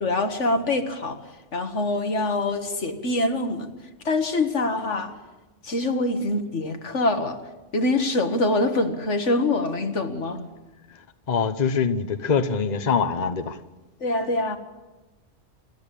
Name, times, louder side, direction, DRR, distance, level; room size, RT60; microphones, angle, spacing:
voice 1, 0.0-1.2 1.5-3.7 4.1-5.1 5.6-7.4 7.7-10.4 14.0-14.6, left 2 dB, 75° left, 2.0 m, -24 dB
voice 2, 11.3-13.6, left 5 dB, 40° left, 1.1 m, -24 dB
26.5 x 13.5 x 8.6 m
omnidirectional pair, 1.2 m